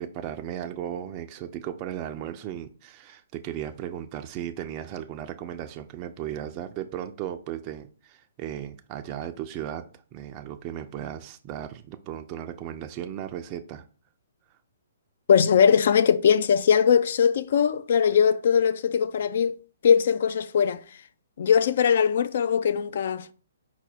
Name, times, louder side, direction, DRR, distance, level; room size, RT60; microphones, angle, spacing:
voice 1, 0.0-9.9 10.1-13.8, right 10 dB, 30° right, 0.4 m, -36 dB
voice 2, 15.3-19.6 19.8-20.8 21.4-23.3, left 7 dB, 55° left, 0.3 m, -21 dB
4.8 x 2.1 x 4.2 m
figure-of-eight pair, 125°, 0 cm